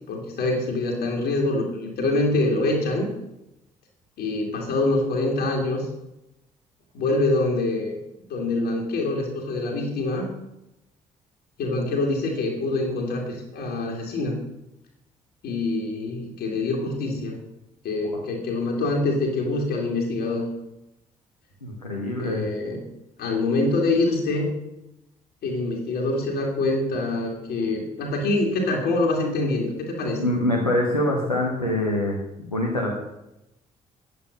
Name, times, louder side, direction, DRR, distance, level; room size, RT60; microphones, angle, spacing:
voice 1, 0.1-3.1 4.2-5.9 6.9-8.0 8.3-10.3 11.6-14.4 15.4-17.4 17.8-20.5 22.2-22.9 23.2-24.5 25.4-30.2, left 2 dB, 60° left, 0 dB, 2.4 m, -25 dB
voice 2, 21.6-22.4 30.2-33.0, left 1 dB, 90° left, -2 dB, 1.1 m, -25 dB
9.2 x 8.6 x 5.2 m, 0.88 s
figure-of-eight pair, 45°, 19 cm